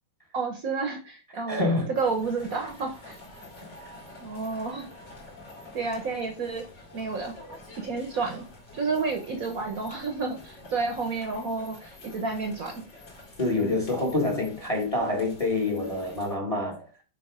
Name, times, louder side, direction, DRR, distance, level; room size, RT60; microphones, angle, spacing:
voice 1, 0.3-1.7 2.0-3.2 4.2-4.9 5.7-6.6 6.9-7.3 7.8-8.4 8.7-12.8, right 4 dB, 55° right, 1.2 m, -30 dB
voice 2, 1.5-1.9 13.4-16.9, left 2 dB, 20° left, 1.4 m, -26 dB
sound 1, 1.9-16.4, left 2 dB, 65° left, 3.1 m, -48 dB
6.2 x 3.8 x 5.0 m
omnidirectional pair, 2.1 m